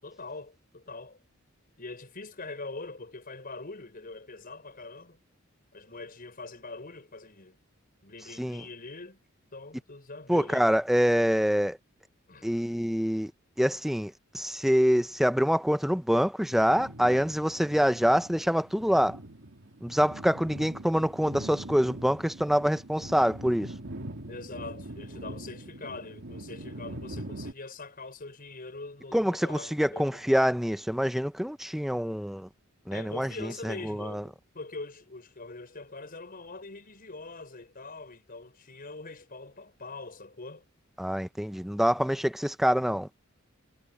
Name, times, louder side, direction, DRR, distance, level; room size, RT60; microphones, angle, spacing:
voice 1, 0.0-1.2 1.8-5.2 5.7-7.6 8.0-9.2 9.5-10.7 12.3-12.5 24.3-30.3 32.9-40.7, left 3 dB, 45° left, 5.2 m, -43 dB
voice 2, 10.3-11.8 12.4-13.3 13.6-19.2 19.8-23.7 29.1-32.5 32.9-33.3 33.6-34.2 41.0-43.1, equal, ahead, 0.7 m, -25 dB
Neutral Wind, 16.5-27.5, right 1 dB, 65° right, 2.5 m, -43 dB
head